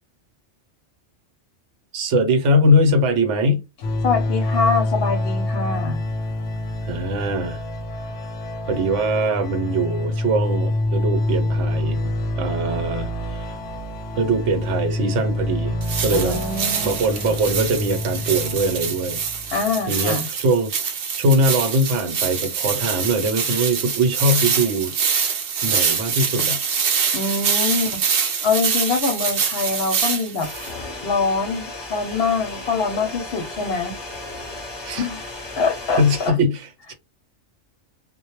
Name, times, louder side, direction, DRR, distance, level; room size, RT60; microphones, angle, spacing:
voice 1, 1.9-3.6 6.8-7.6 8.7-13.6 14.2-16.4 16.8-19.2 19.9-25.0 25.6-26.6 34.8-35.1 36.0-36.9, right 1 dB, 80° right, 1.0 m, -22 dB
sound 1, 3.8-19.7, left 1 dB, 90° left, 0.9 m, -26 dB
voice 2, 4.0-6.0 16.1-17.0 19.5-20.3 27.1-28.0 28.4-30.5 31.0-34.0 35.0-36.4, left 4 dB, 65° left, 0.7 m, -24 dB
sound 2, 15.8-30.7, right 6 dB, 60° right, 0.7 m, -25 dB
sound 3, 30.4-36.3, left 2 dB, 25° left, 0.7 m, -35 dB
2.1 x 2.0 x 2.9 m
omnidirectional pair, 1.2 m